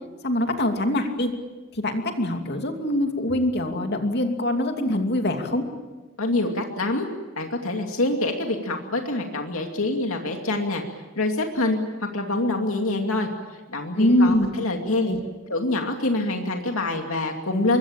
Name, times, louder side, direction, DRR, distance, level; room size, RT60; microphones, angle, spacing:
voice 1, 0.2-1.3 1.7-5.6 13.9-14.5 15.0-15.2, left 1 dB, 50° left, 4 dB, 2.8 m, -23 dB
voice 2, 6.2-7.1 7.4-10.8 11.2-11.8 12.1-13.3 13.7-15.1 15.5-17.8, left 2 dB, 70° left, 3 dB, 2.6 m, -25 dB
25.5 x 22.5 x 8.9 m, 1.3 s
head